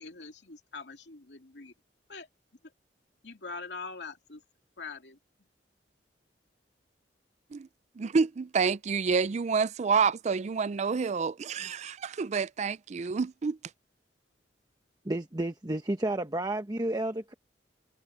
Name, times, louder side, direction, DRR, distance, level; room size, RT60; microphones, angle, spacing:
voice 1, 0.0-1.7 2.1-2.3 3.2-4.4 4.8-5.2, left 4 dB, 75° left, 2.5 m, -43 dB
voice 2, 8.0-13.6, right 5 dB, 40° right, 0.4 m, -28 dB
voice 3, 15.0-17.3, right 1 dB, 20° right, 1.0 m, -31 dB
head